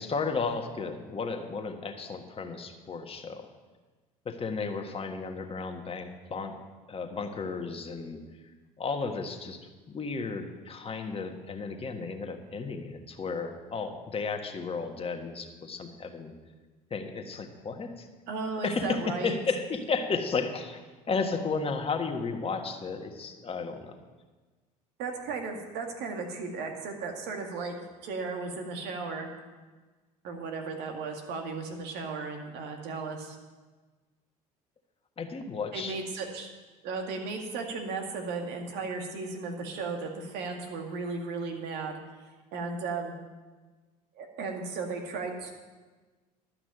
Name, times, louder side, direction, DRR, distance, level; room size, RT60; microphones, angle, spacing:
voice 1, 0.0-3.5 4.2-6.6 6.9-8.2 8.8-9.6 9.9-16.3 16.9-18.1 18.6-23.9 35.2-36.0, left 4 dB, 30° left, 4 dB, 1.6 m, -33 dB
voice 2, 18.3-19.4 25.0-27.7 28.0-29.3 30.2-33.4 35.7-36.5 36.8-42.0 42.5-43.2 44.2-45.5, right 4 dB, 65° right, 3 dB, 2.2 m, -35 dB
11.5 x 6.0 x 9.3 m, 1.3 s
hypercardioid pair, 80°, 18 cm